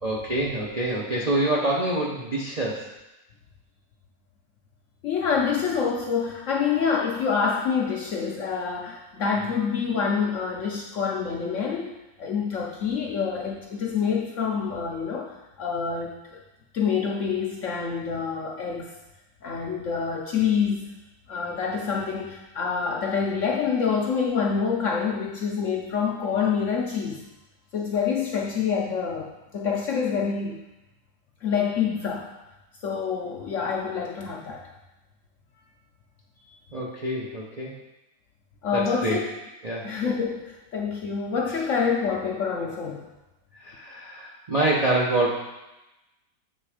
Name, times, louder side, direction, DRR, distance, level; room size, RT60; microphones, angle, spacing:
voice 1, 0.0-2.9 36.7-37.7 38.7-39.2 39.6-39.9 43.6-45.3, right 1 dB, 45° right, -4 dB, 0.5 m, -26 dB
voice 2, 5.0-16.4 16.7-18.9 19.4-20.9 21.3-27.2 27.7-30.6 31.4-32.3 32.8-34.7 38.6-39.4 39.8-43.1, left 6 dB, 60° left, -1 dB, 0.8 m, -27 dB
7.8 x 3.3 x 4.9 m, 1.0 s
omnidirectional pair, 1.8 m